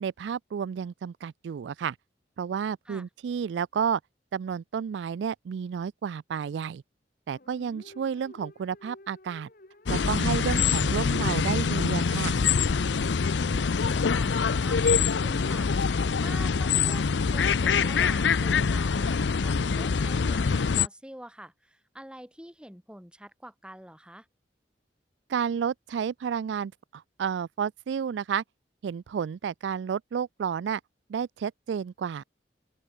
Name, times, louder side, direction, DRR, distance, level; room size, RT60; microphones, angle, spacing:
voice 1, 0.0-2.0 2.4-4.0 4.3-6.8 7.3-9.5 9.9-12.3 25.3-28.4 28.8-30.8 31.1-32.2, right 7 dB, 85° right, 0.3 m, -31 dB
sound 1, 7.3-14.3 14.6-17.1, left 1 dB, 55° left, 3.6 m, -52 dB
sound 2, 9.9-20.9, left 5 dB, 85° left, 0.6 m, -25 dB
voice 2, 13.5-15.7 16.2-24.3, right 1 dB, 5° right, 7.1 m, -46 dB
open air
head